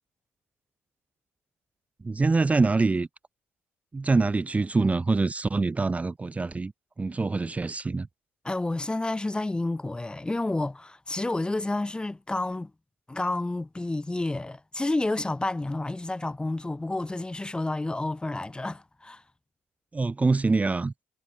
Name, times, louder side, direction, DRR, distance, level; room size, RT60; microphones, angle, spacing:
voice 1, 2.0-3.1 3.9-6.7 7.0-8.1 19.9-20.9, right 3 dB, 20° right, 1.4 m, -25 dB
voice 2, 8.4-12.7 13.1-19.2, left 2 dB, 15° left, 2.1 m, -30 dB
hypercardioid pair, 60°, 6 cm